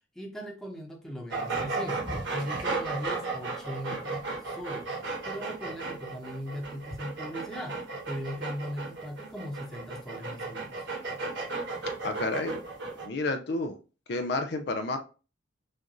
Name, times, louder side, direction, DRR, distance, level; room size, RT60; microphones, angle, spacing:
voice 1, 0.1-2.0 2.3-4.9 5.2-10.8, equal, ahead, 0 dB, 0.9 m, -39 dB
sound 1, 1.3-13.1, right 3 dB, 65° right, 1.3 m, -34 dB
voice 2, 12.0-12.6 13.0-13.8 14.1-15.0, left 2 dB, 55° left, 7 dB, 0.5 m, -30 dB
6.2 x 2.5 x 3.0 m, 0.34 s
head